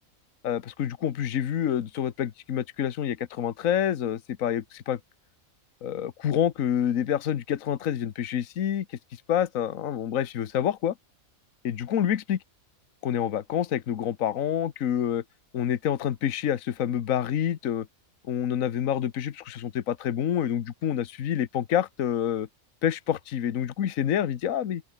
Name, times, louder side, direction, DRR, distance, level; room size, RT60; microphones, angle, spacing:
voice 1, 0.4-5.0 5.8-8.8 9.3-10.9 11.6-12.4 13.0-15.2 15.5-17.9 18.3-22.5 22.8-24.8, left 9 dB, 70° left, 1.4 m, -27 dB
open air
omnidirectional pair, 1.5 m